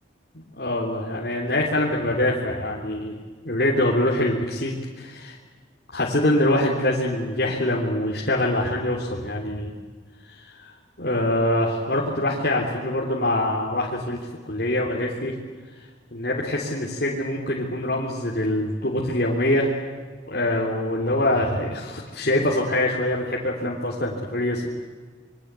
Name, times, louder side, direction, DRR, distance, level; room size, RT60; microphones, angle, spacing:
voice 1, 0.6-3.2 3.4-5.4 5.9-9.7 10.3-10.7 11.0-14.2 14.5-15.4 16.1-19.7 20.3-24.7, left 1 dB, 55° left, -3 dB, 3.6 m, -24 dB
27.0 x 23.5 x 8.4 m, 1.5 s
head